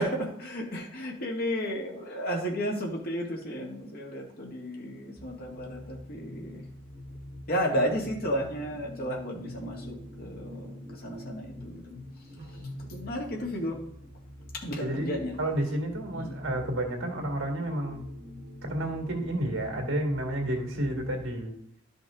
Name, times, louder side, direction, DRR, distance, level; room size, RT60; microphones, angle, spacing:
voice 1, 0.0-6.6 7.5-10.7 11.0-12.0 12.9-13.8 14.5-15.3 16.1-16.4, equal, 50° left, 0 dB, 2.0 m, -33 dB
sound 1, 5.2-21.3, left 1 dB, 35° right, 1.5 m, -44 dB
voice 2, 14.7-18.1 18.6-21.5, right 1 dB, 70° right, 2 dB, 2.0 m, -31 dB
12.0 x 5.4 x 3.7 m, 0.72 s
head